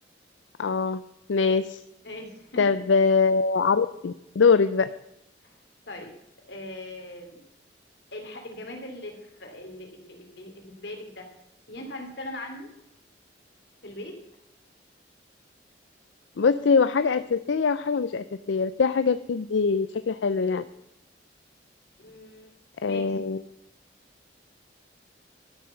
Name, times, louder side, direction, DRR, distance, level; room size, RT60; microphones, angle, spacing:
voice 1, 0.6-1.0 1.3-1.8 2.6-4.9 16.4-20.6 22.8-23.4, left 5 dB, 80° left, 13 dB, 0.5 m, -23 dB
voice 2, 2.0-2.7 5.4-5.5 5.9-6.1 6.5-7.4 8.1-11.3 11.7-12.7 13.8-14.1 22.0-22.5 22.8-23.1, left 1 dB, 60° left, 3 dB, 2.9 m, -40 dB
12.5 x 7.7 x 6.9 m, 0.86 s
head